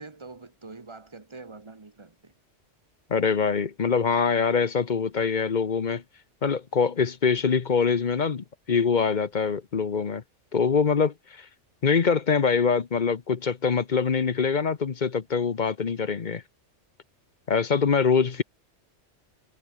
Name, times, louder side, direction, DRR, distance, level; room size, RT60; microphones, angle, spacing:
voice 1, 0.0-2.3 18.2-18.4, right 3 dB, 25° right, 1.3 m, -45 dB
voice 2, 3.1-6.0 6.4-10.2 10.5-11.5 11.8-16.4 17.5-18.4, left 5 dB, 40° left, 1.0 m, -24 dB
omnidirectional pair, 1.2 m